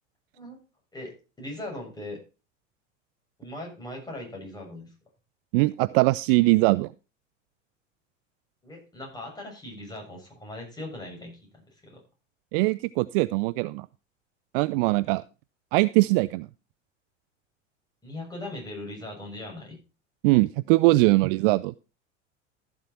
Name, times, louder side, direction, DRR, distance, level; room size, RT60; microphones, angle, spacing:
voice 1, 0.9-2.2 3.4-4.9 8.6-12.0 18.0-19.8, left 1 dB, 10° left, -1 dB, 7.2 m, -39 dB
voice 2, 5.5-6.9 12.5-13.9 14.5-15.2 15.7-16.5 20.2-21.8, right 22 dB, 50° right, 18 dB, 0.4 m, -21 dB
14.0 x 7.3 x 4.3 m, 0.31 s
figure-of-eight pair, 80°, 37 cm